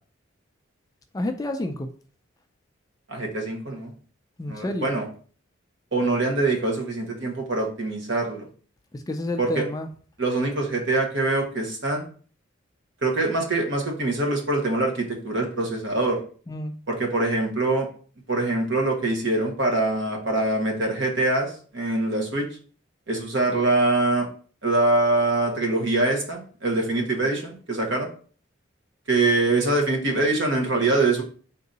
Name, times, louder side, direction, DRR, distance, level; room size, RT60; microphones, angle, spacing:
voice 1, 1.1-1.9 4.4-4.9 8.9-9.9 16.5-16.7, left 1 dB, 20° left, 6 dB, 0.3 m, -29 dB
voice 2, 3.1-3.9 4.5-5.1 5.9-8.4 9.4-9.6 10.2-12.0 13.0-16.2 16.9-17.9 18.3-22.5 23.1-24.3 24.6-28.1 29.1-31.2, right 2 dB, 65° right, 2 dB, 1.1 m, -24 dB
3.8 x 2.7 x 3.9 m, 0.43 s
head